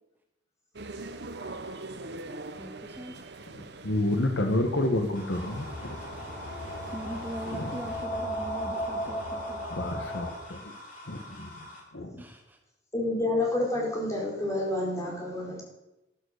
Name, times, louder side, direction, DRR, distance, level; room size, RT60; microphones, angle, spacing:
sound 1, 0.7-8.0, right 2 dB, 60° right, 1.1 m, -43 dB
voice 1, 2.6-3.1 6.9-9.6 12.2-12.6, equal, 10° right, 4 dB, 1.0 m, -41 dB
voice 2, 3.8-6.0 7.5-7.8 9.7-10.7 11.1-11.6 11.9-12.2, left 1 dB, 70° left, 5 dB, 1.6 m, -29 dB
sound 2, 5.2-11.8, left 2 dB, 45° left, 4.1 m, -47 dB
sound 3, 5.3-10.3, equal, 90° left, 3.7 m, -35 dB
voice 3, 12.9-15.6, left 2 dB, 15° left, -2 dB, 4.5 m, -29 dB
13.5 x 12.0 x 6.7 m, 0.96 s
head